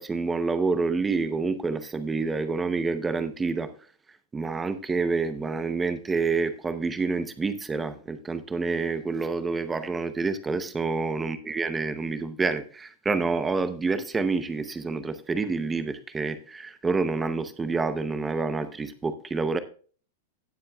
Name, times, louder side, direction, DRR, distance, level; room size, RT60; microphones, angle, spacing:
voice 1, 0.0-3.7 4.3-19.6, right 4 dB, 10° right, 11 dB, 0.7 m, -28 dB
17.0 x 7.5 x 2.3 m, 0.41 s
supercardioid pair, 180°, 0 cm